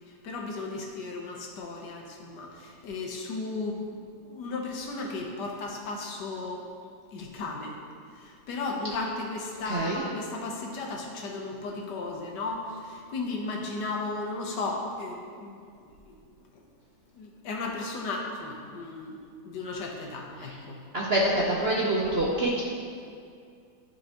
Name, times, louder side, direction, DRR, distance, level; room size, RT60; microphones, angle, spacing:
voice 1, 0.1-6.6 7.1-7.7 8.1-16.2 16.5-16.6 17.1-20.8, left 3 dB, 70° left, 0 dB, 1.5 m, -35 dB
voice 2, 9.7-10.0 20.4-20.5 20.9-22.6, right 1 dB, 50° right, -5 dB, 0.8 m, -26 dB
12.0 x 4.4 x 2.9 m, 2.3 s
omnidirectional pair, 2.0 m